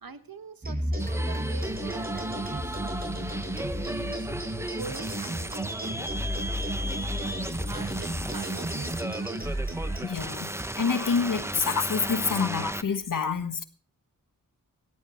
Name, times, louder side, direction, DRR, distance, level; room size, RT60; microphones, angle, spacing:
voice 1, 0.0-4.4 4.8-6.2 7.6-9.6, right 5 dB, 80° right, 1.4 m, -44 dB
sound 1, 0.6-10.1, equal, 25° right, 5.1 m, -33 dB
sound 2, 1.0-12.8, right 1 dB, 10° right, 0.9 m, -35 dB
voice 2, 10.0-13.6, left 5 dB, 65° left, 1.4 m, -27 dB
18.5 x 14.5 x 3.1 m
wide cardioid pair, 65°, 35 cm